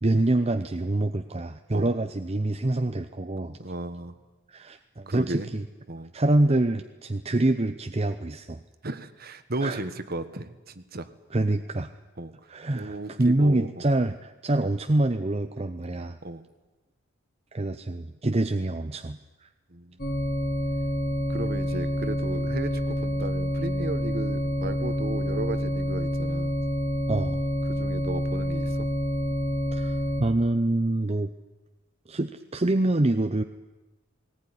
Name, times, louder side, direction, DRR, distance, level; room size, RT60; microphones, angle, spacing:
voice 1, 0.0-3.6 4.5-5.7 6.1-8.6 9.6-9.8 11.3-11.9 12.5-16.2 17.5-19.5 27.1-27.4 29.7-31.3 32.1-33.4, right 2 dB, 30° right, 7 dB, 0.7 m, -26 dB
voice 2, 3.6-4.2 5.1-5.5 5.9-6.1 8.8-11.1 12.2-12.3 12.7-13.9 16.2-16.4 19.7-20.0 21.3-26.5 27.7-28.9, right 2 dB, 50° right, 11 dB, 1.4 m, -35 dB
sound 1, 20.0-30.2, equal, 45° left, 3.3 m, -28 dB
19.5 x 19.0 x 9.9 m, 1.2 s
head